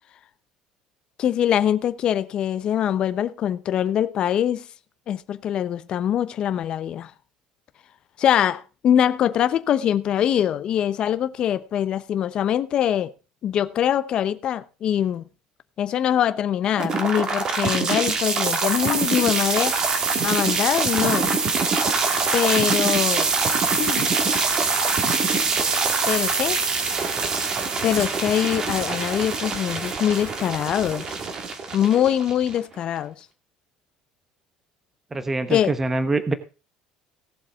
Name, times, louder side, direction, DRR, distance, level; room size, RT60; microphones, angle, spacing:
voice 1, 1.2-4.6 5.1-7.1 8.2-13.1 13.4-15.2 15.8-19.8 20.2-21.4 22.3-23.3 23.8-24.0 26.1-26.6 27.8-31.1 31.7-33.1 35.5-35.7, left 10 dB, 35° left, 0.9 m, -23 dB
sound 1, 16.8-32.8, right 4 dB, 30° right, 1.9 m, -24 dB
voice 2, 35.1-36.3, right 2 dB, 10° right, 1.1 m, -24 dB
18.0 x 7.4 x 3.6 m
cardioid pair, 175°, 3 cm